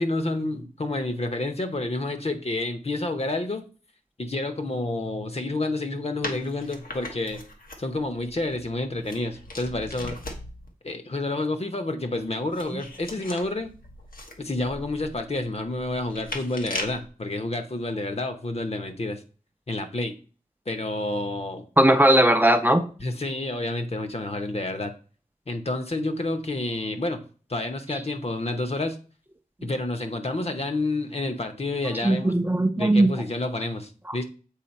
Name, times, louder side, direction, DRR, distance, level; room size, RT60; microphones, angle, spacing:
voice 1, 0.0-3.7 4.2-7.4 7.8-10.2 10.8-13.7 14.4-19.2 19.7-20.1 20.7-21.6 23.0-24.9 25.5-27.2 27.5-29.0 29.6-32.3 32.8-34.2, left 2 dB, 45° left, 1.0 m, -29 dB
sound 1, 6.2-10.7 12.2-17.1, left 2 dB, 80° left, 1.2 m, -39 dB
voice 2, 21.8-22.9 32.0-33.1, right 1 dB, 15° right, 0.5 m, -18 dB
7.4 x 4.3 x 4.3 m
wide cardioid pair, 80°, 15 cm